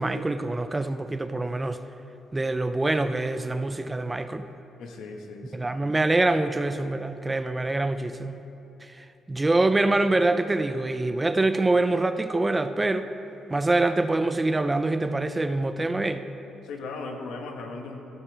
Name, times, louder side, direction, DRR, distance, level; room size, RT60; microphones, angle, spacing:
voice 1, 0.0-1.8 2.3-4.5 5.5-8.4 8.8-13.1 13.5-16.3, right 2 dB, 15° right, 10 dB, 0.4 m, -25 dB
voice 2, 4.8-5.7 16.6-18.0, left 3 dB, 80° left, 3 dB, 1.3 m, -37 dB
16.0 x 12.5 x 3.4 m, 2.9 s
cardioid pair, 90°, 0 cm